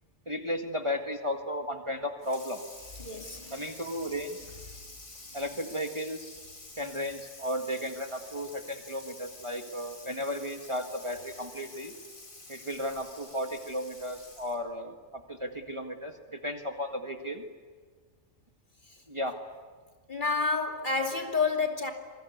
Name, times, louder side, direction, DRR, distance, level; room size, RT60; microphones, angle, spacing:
voice 1, 0.3-2.6 3.5-4.4 5.3-6.4 6.8-11.9 12.5-14.9 15.3-17.4 19.1-19.4 21.0-21.1, equal, 20° right, 1.8 m, -34 dB
Water tap faucet / Sink (filling or washing), 2.2-14.7, left 2 dB, 85° left, 4.6 m, -49 dB
voice 2, 3.0-3.7 18.9-19.0 20.1-21.9, left 4 dB, 35° left, 2.8 m, -29 dB
27.5 x 22.0 x 9.4 m
omnidirectional pair, 1.4 m